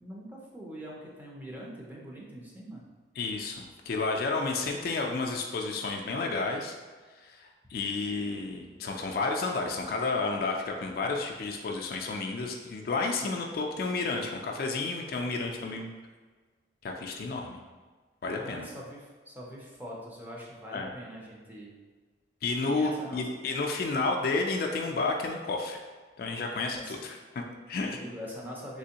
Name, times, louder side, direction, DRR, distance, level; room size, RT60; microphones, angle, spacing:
voice 1, 0.0-2.9 18.3-21.8 22.7-23.3 26.7-26.9 27.9-28.8, equal, 10° right, -4 dB, 0.5 m, -43 dB
voice 2, 3.2-6.8 7.2-15.9 16.8-17.6 18.2-18.7 20.7-20.9 22.4-25.8 26.2-28.0, left 3 dB, 50° left, 1 dB, 0.3 m, -31 dB
3.3 x 3.0 x 2.8 m, 1.4 s
head